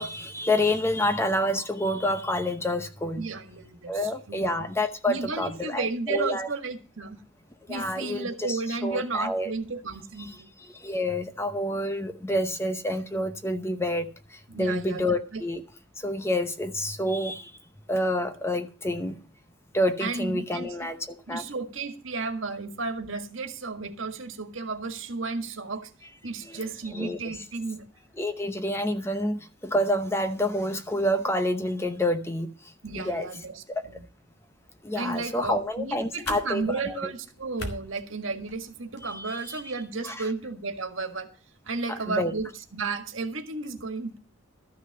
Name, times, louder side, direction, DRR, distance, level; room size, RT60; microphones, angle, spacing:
voice 1, 0.0-3.2 3.9-6.5 7.7-9.5 10.2-10.3 10.7-15.6 16.0-17.5 17.9-19.2 19.7-21.4 26.4-26.6 26.9-27.4 28.2-33.3 33.7-33.8 34.8-37.1 39.0-39.6 40.0-40.3 41.9-42.3, left 1 dB, 15° left, 0.7 m, -28 dB
voice 2, 3.2-4.7 5.1-7.2 7.7-10.5 14.5-15.4 20.0-20.7 21.3-25.9 26.2-27.8 32.8-34.0 35.0-41.3 41.6-44.2, right 3 dB, 80° right, 1.7 m, -33 dB
sound 1, 35.1-39.1, left 2 dB, 55° left, 2.1 m, -43 dB
13.0 x 6.4 x 6.7 m
head